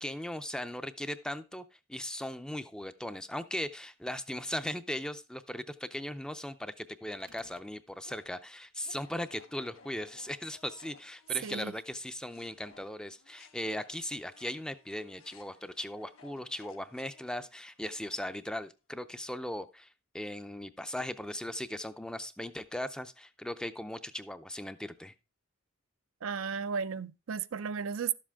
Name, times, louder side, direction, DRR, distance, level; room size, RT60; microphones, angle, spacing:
voice 1, 0.0-1.6 1.9-19.9 20.1-25.1, left 1 dB, 5° left, 0.5 m, -38 dB
sound 1, 7.1-12.0 12.3-18.6, left 4 dB, 75° left, 1.2 m, -59 dB
sound 2, 7.2-7.7, right 4 dB, 40° right, 0.8 m, -59 dB
voice 2, 11.4-11.7 26.2-28.1, right 6 dB, 65° right, 0.5 m, -34 dB
12.0 x 7.5 x 3.5 m
head